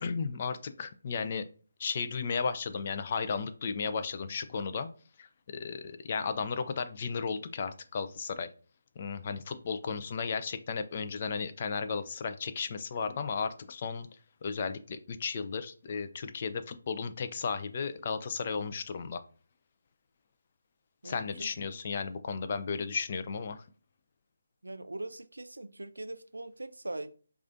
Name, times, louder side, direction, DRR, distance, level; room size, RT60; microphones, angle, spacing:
voice 1, 0.0-1.5 1.8-4.9 5.2-8.5 9.0-14.1 14.4-19.2 21.0-23.6, left 5 dB, 40° left, 0.4 m, -34 dB
voice 2, 21.0-21.5 24.6-27.1, right 2 dB, 85° right, 0.4 m, -41 dB
4.7 x 2.4 x 2.6 m
figure-of-eight pair, 155°, 0 cm